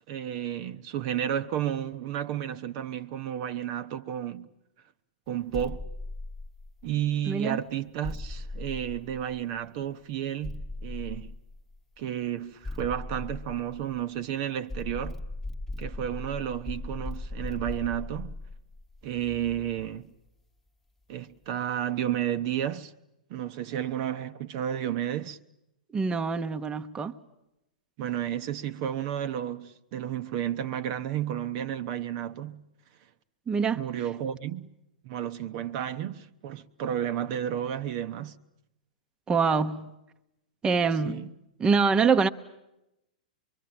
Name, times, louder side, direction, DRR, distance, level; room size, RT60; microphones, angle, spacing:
voice 1, 0.0-4.5 5.3-5.8 6.8-11.3 12.0-15.2 15.8-18.3 19.0-20.1 21.1-22.9 23.3-25.4 28.0-32.6 33.7-34.7 35.0-38.4 41.0-41.3, right 10 dB, 45° right, 0.9 m, -32 dB
sound 1, 5.5-7.0 8.0-9.6 10.4-11.8 12.6-14.2 14.7-20.0, left 2 dB, 5° left, 1.2 m, -38 dB
voice 2, 7.3-7.6 25.9-27.1 33.5-33.8 39.3-39.9 40.6-41.3 41.6-42.3, right 5 dB, 15° right, 0.9 m, -25 dB
24.5 x 23.5 x 8.8 m
hypercardioid pair, 115°, 4 cm